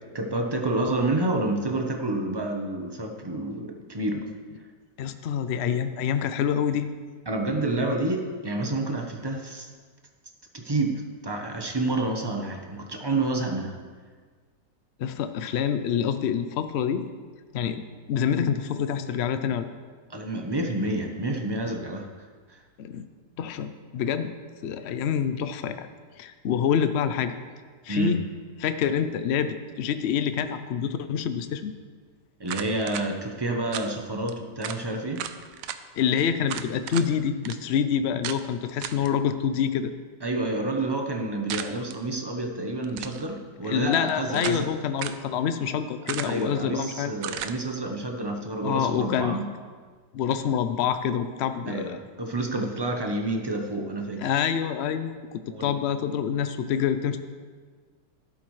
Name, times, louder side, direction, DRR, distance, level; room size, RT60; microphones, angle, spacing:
voice 1, 0.1-4.3 7.3-9.7 10.5-13.7 20.1-22.6 27.9-28.2 32.4-35.3 40.2-44.7 46.2-49.5 51.7-54.4 55.5-55.8, right 2 dB, 25° right, 3 dB, 0.6 m, -29 dB
voice 2, 5.0-6.9 15.0-17.1 17.5-19.7 22.8-23.0 23.4-24.3 24.6-25.9 26.2-27.4 27.8-28.3 28.6-31.7 36.0-39.9 43.6-47.1 48.6-49.4 50.1-52.0 54.2-55.2 55.6-57.2, left 8 dB, 80° left, 10 dB, 0.5 m, -26 dB
sound 1, 32.5-33.1 33.7-33.9 34.3-34.4 34.6-34.8 35.2-35.8 36.5-37.1 37.4-37.6 38.2-38.4 38.8-39.1 41.5-42.0 42.8-43.2 43.9-44.7 45.0-45.2 46.1-46.5 47.2-47.6, right 10 dB, 70° right, 0.8 m, -35 dB
12.5 x 11.0 x 3.2 m, 1.5 s
omnidirectional pair, 1.8 m